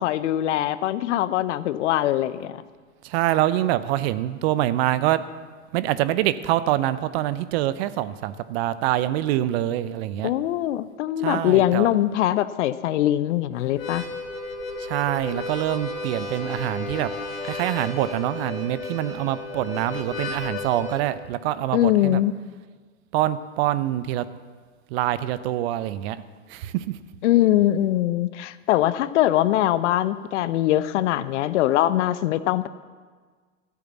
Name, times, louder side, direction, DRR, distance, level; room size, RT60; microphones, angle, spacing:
voice 1, 0.0-2.6 10.2-14.0 21.7-22.3 27.2-32.7, left 13 dB, 60° left, 15 dB, 0.7 m, -22 dB
voice 2, 3.0-5.2 5.7-10.3 11.2-11.9 14.9-17.1 17.4-22.2 23.1-24.3 24.9-26.2 26.5-26.8, right 13 dB, 50° right, 14 dB, 0.7 m, -25 dB
Harmonica, 13.6-21.0, left 3 dB, 80° left, 2.2 m, -33 dB
14.0 x 8.3 x 7.2 m, 1.5 s
hypercardioid pair, 95°, 40 cm